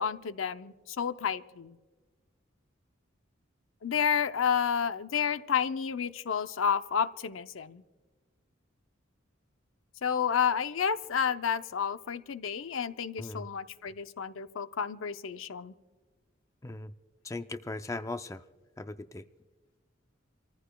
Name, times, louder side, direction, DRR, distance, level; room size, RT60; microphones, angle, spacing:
voice 1, 0.0-1.8 3.8-7.8 10.0-15.7, left 7 dB, 90° left, 12 dB, 0.6 m, -30 dB
voice 2, 17.2-18.4 18.8-19.2, left 2 dB, 15° left, 10 dB, 0.4 m, -38 dB
28.5 x 14.5 x 2.3 m, 1.3 s
head